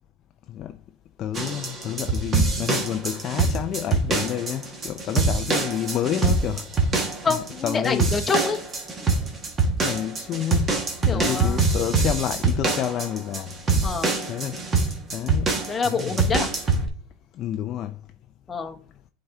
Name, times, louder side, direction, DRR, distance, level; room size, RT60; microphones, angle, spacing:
voice 1, 1.2-7.2 7.6-8.1 9.8-13.5 14.3-14.6 15.1-16.2 17.3-18.0, left 11 dB, 40° left, 0.4 m, -29 dB
sound 1, 1.3-16.9, right 3 dB, 30° right, 1.5 m, -24 dB
voice 2, 7.2-8.6 11.1-11.7 13.8-14.1 15.7-16.5 18.5-18.8, left 4 dB, 20° left, 0.9 m, -26 dB
8.5 x 3.9 x 3.6 m
supercardioid pair, 115°, 0 cm